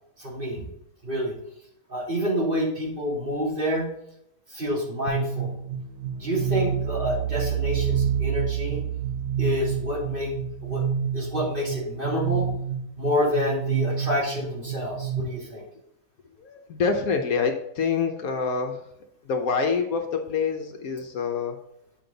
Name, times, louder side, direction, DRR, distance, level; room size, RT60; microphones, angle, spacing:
voice 1, 0.2-0.6 1.0-1.4 1.9-3.9 4.5-5.5 6.1-8.8 9.4-10.3 10.6-10.8 11.1-12.5 13.0-15.6, equal, 35° right, -5 dB, 3.1 m, -28 dB
sound 1, 5.1-15.2, right 8 dB, 60° right, 1.4 m, -28 dB
voice 2, 16.4-18.8 19.2-21.6, left 5 dB, 65° left, 5 dB, 1.2 m, -26 dB
8.7 x 5.2 x 3.9 m, 0.78 s
omnidirectional pair, 1.7 m